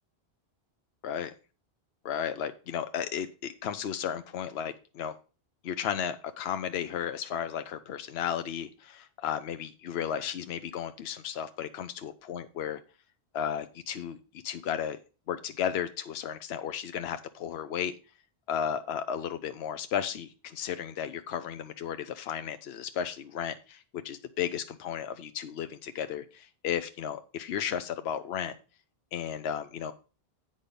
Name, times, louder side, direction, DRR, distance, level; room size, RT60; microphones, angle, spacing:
voice 1, 2.0-5.2 5.6-12.8 13.3-14.2 14.4-15.0 15.3-17.9 18.5-28.6 29.1-29.9, left 9 dB, 75° left, 10 dB, 0.9 m, -34 dB
8.5 x 5.5 x 5.2 m, 0.34 s
omnidirectional pair, 1.1 m